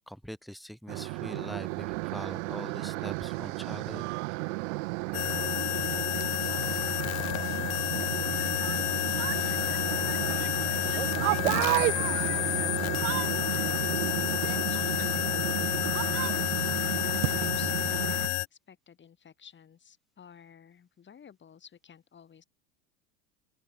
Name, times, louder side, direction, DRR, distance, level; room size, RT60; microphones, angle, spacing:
voice 1, 0.1-4.1, equal, ahead, 3.9 m, -43 dB
sound 1, 0.9-18.3, right 26 dB, 65° right, 1.4 m, -32 dB
sound 2, 5.1-18.5, left 24 dB, 45° left, 0.5 m, -30 dB
voice 2, 7.1-15.7 16.0-22.4, left 7 dB, 30° left, 3.8 m, -53 dB
open air
hypercardioid pair, 90°, 38 cm